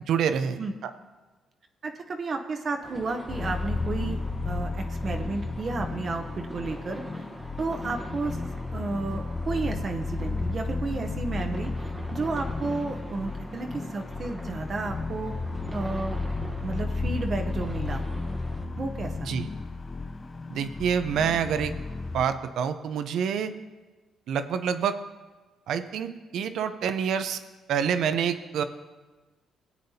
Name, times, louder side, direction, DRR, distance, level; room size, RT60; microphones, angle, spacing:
voice 1, 0.1-0.9 19.3-19.5 20.5-21.7 22.1-23.5 24.3-24.9 25.7-27.4 27.7-28.6, right 7 dB, 75° right, 10 dB, 0.6 m, -27 dB
voice 2, 1.8-7.3 7.6-8.4 8.7-15.4 15.7-16.2 16.6-18.0 18.7-19.3, right 3 dB, 45° right, 4 dB, 0.8 m, -32 dB
sound 1, 2.8-18.7, right 1 dB, 15° right, 1.0 m, -45 dB
sound 2, 3.3-22.3, left 3 dB, 30° left, 0.6 m, -33 dB
17.0 x 8.6 x 2.8 m, 1.3 s
cardioid pair, 90°, 0 cm